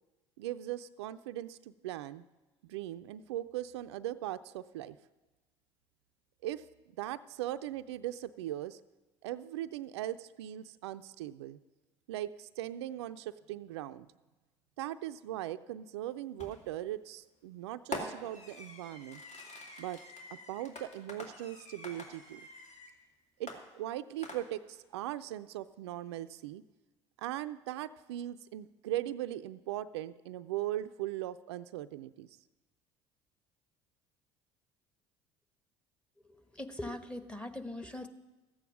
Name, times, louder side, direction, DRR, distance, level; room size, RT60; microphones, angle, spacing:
voice 1, 0.4-2.2 2.6-5.0 6.4-6.7 7.0-8.8 9.2-11.6 12.1-14.1 14.8-19.2 19.8-20.0 20.5-22.5 23.4-26.6 27.2-32.3, right 13 dB, 75° right, 11 dB, 0.4 m, -39 dB
Fireworks, 16.4-16.8 17.9-23.0 23.5-24.8, left 1 dB, 50° left, 2.5 m, -45 dB
voice 2, 36.2-38.1, left 1 dB, 10° left, 9 dB, 1.2 m, -41 dB
14.0 x 8.7 x 6.1 m, 1.1 s
hypercardioid pair, 65°, 14 cm